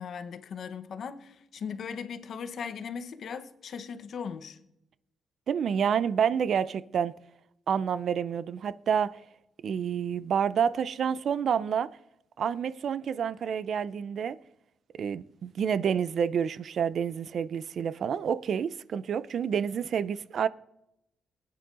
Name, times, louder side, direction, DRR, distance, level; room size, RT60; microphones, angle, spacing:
voice 1, 0.0-4.6, left 6 dB, 70° left, 0.8 m, -38 dB
voice 2, 5.5-7.1 7.7-9.2 9.6-11.9 12.4-14.4 15.0-20.5, right 7 dB, 70° right, 0.4 m, -28 dB
19.0 x 9.4 x 2.5 m
cardioid pair, 85°, 0 cm